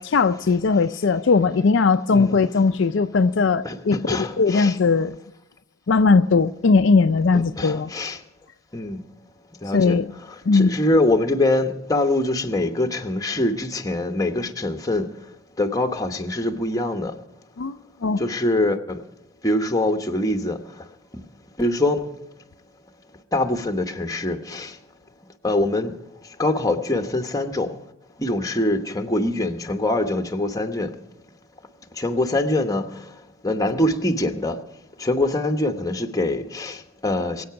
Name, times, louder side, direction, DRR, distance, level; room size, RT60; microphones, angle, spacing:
voice 1, 0.0-5.2 5.9-7.9 9.7-10.1 10.5-10.7 17.6-17.8 18.0-18.2, left 4 dB, 60° left, 8 dB, 0.5 m, -19 dB
voice 2, 3.6-4.8 7.3-8.2 8.7-9.0 9.6-10.0 10.5-15.1 15.6-17.1 18.2-19.0 19.4-20.6 21.1-21.2 21.6-22.1 23.3-24.8 25.4-25.9 26.4-27.7 28.2-30.9 32.0-33.0 33.4-34.6 35.0-37.4, left 1 dB, 15° left, 6 dB, 1.1 m, -23 dB
22.5 x 8.6 x 5.8 m, 0.90 s
head